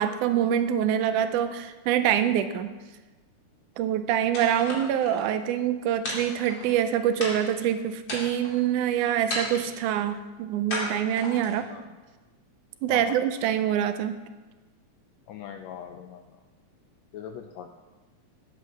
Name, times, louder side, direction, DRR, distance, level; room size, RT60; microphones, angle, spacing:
voice 1, 0.0-2.7 3.8-11.7 12.8-14.2, right 10 dB, 80° right, 10 dB, 2.0 m, -25 dB
sound 1, 4.3-5.2 6.0-6.8 7.2-7.6 8.0-8.6 9.3-9.9 10.7-11.6, left 1 dB, 35° left, 2.9 m, -34 dB
voice 2, 12.9-13.2 15.3-16.2 17.1-17.7, left 8 dB, 85° left, 6 dB, 1.6 m, -40 dB
9.4 x 8.2 x 6.5 m, 1.2 s
omnidirectional pair, 3.7 m